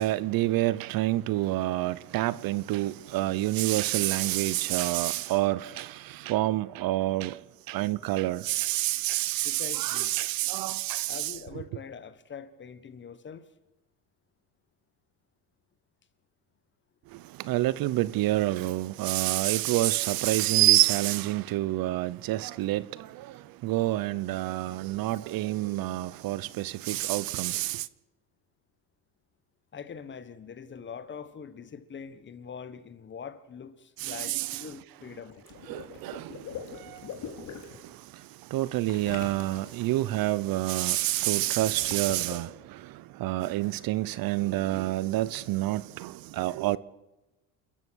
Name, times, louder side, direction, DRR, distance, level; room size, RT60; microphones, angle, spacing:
voice 1, 0.0-7.4 7.7-11.6 17.1-27.9 34.0-34.6 35.7-36.4 36.8-37.1 38.5-46.8, right 16 dB, 60° right, 0.8 m, -28 dB
voice 2, 9.4-10.2 11.1-13.5 29.7-35.3, left 6 dB, 30° left, 1.4 m, -43 dB
Water / Liquid, 35.3-37.8 38.8-39.9 41.4-42.3, left 7 dB, 50° left, 3.0 m, -42 dB
28.5 x 14.5 x 6.3 m
cardioid pair, 140°, 39 cm